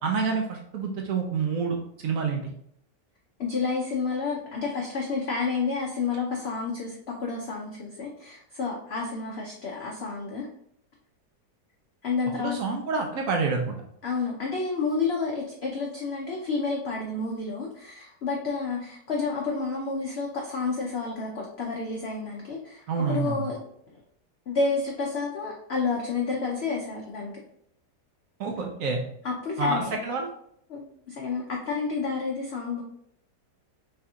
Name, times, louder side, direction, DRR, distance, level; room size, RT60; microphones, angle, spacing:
voice 1, 0.0-2.5 12.4-13.8 22.9-23.5 28.4-29.0 29.6-30.3, right 4 dB, 70° right, 2 dB, 0.8 m, -28 dB
voice 2, 3.4-10.5 12.0-12.6 14.0-23.6 23.9-24.0 24.5-27.3 29.2-29.9 30.7-32.8, left 4 dB, 80° left, -1 dB, 0.5 m, -30 dB
3.3 x 2.8 x 3.5 m, 0.71 s
omnidirectional pair, 1.8 m